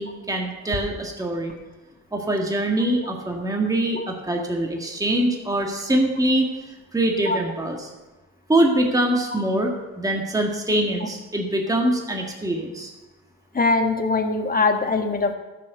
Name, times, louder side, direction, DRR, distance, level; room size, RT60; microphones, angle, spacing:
voice 1, 0.0-1.5 2.1-6.5 6.9-7.9 8.5-12.9, right 1 dB, 10° right, 1 dB, 1.8 m, -23 dB
voice 2, 13.5-15.3, left 3 dB, 30° left, 5 dB, 1.6 m, -21 dB
13.0 x 6.5 x 6.5 m, 1.1 s
cardioid pair, 90°, 30 cm